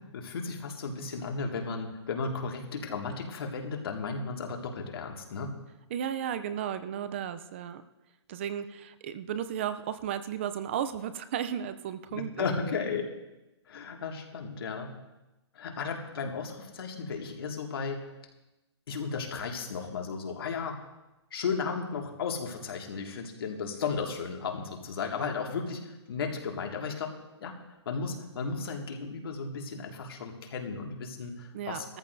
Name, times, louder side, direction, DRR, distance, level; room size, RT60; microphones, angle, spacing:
voice 1, 0.0-5.6 12.1-13.1 13.7-15.0 15.5-18.1 18.9-20.8 21.3-27.6 27.9-32.0, left 5 dB, 55° left, 2 dB, 2.1 m, -35 dB
voice 2, 5.9-7.8 8.3-12.9 31.5-32.0, right 9 dB, 25° right, 12 dB, 0.5 m, -34 dB
17.5 x 14.0 x 2.7 m, 1.0 s
hypercardioid pair, 165°, 15 cm